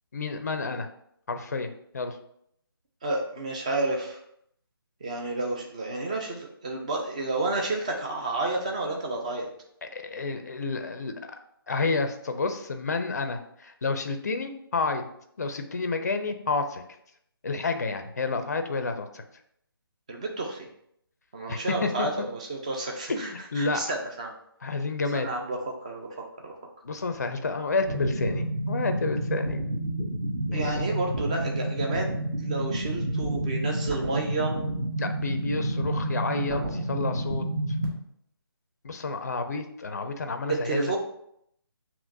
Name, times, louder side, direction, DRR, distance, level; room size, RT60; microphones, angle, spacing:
voice 1, 0.1-0.9 1.3-2.2 9.9-11.3 11.7-15.1 15.4-16.8 17.4-19.2 21.5-22.3 23.1-23.9 24.6-25.3 26.8-29.6 30.5-30.7 35.0-37.4 38.8-40.9, left 3 dB, 45° left, 7 dB, 0.4 m, -30 dB
voice 2, 3.0-4.2 5.0-9.5 20.1-20.7 21.3-24.3 25.1-26.1 26.4-26.5 30.5-34.6 40.6-41.0, right 2 dB, 15° right, 1 dB, 0.4 m, -31 dB
sound 1, 27.9-37.9, right 1 dB, 45° right, 1.2 m, -29 dB
6.8 x 2.9 x 2.6 m, 0.72 s
figure-of-eight pair, 150°, 13 cm